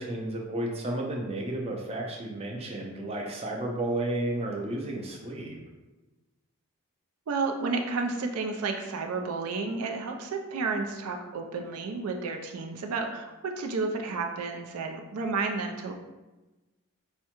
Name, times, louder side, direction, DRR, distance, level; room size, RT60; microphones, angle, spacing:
voice 1, 0.0-5.6, right 1 dB, 25° right, -1 dB, 0.5 m, -32 dB
voice 2, 7.3-15.9, right 4 dB, 90° right, 3 dB, 0.4 m, -31 dB
4.6 x 2.1 x 2.9 m, 1.1 s
head